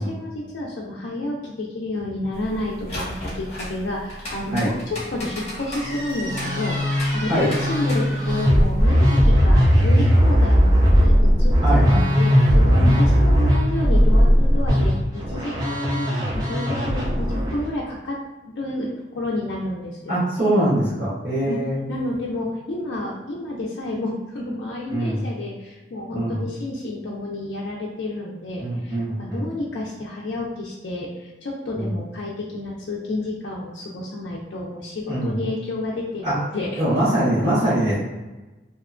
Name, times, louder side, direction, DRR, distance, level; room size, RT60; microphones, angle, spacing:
voice 1, 0.0-18.2 18.5-20.6 20.9-21.0 21.5-21.6 21.9-36.8, left 2 dB, 70° left, -4 dB, 0.4 m, -30 dB
sound 1, 2.3-8.8, equal, 35° left, 0.8 m, -34 dB
Musical instrument, 5.9-17.6, equal, 20° right, 0.3 m, -18 dB
voice 2, 11.6-12.2 12.7-13.0 20.1-21.8 24.9-25.3 26.1-26.4 28.6-29.5 31.7-31.9 35.1-35.3 36.2-36.3 36.8-38.0, right 1 dB, 70° right, -13 dB, 1.2 m, -23 dB
2.8 x 2.1 x 2.4 m, 1.1 s
head